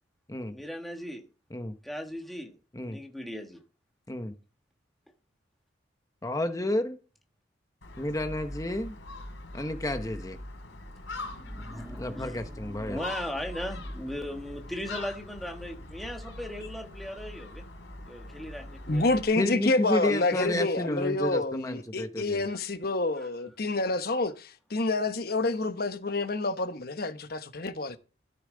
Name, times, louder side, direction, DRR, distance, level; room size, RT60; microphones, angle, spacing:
voice 1, 0.5-1.2 1.8-2.6 2.9-3.6 11.1-17.6 18.1-19.2 22.5-22.6 23.2-23.3, equal, ahead, 1.5 m, -38 dB
voice 2, 6.2-7.0 8.0-9.0 9.5-10.4 12.0-13.0 19.4-22.4, left 1 dB, 15° left, 0.8 m, -31 dB
Gull seagull, 7.8-19.2, left 1 dB, 85° left, 3.4 m, -42 dB
voice 3, 18.9-28.0, left 2 dB, 50° left, 1.0 m, -28 dB
13.5 x 6.8 x 3.9 m
head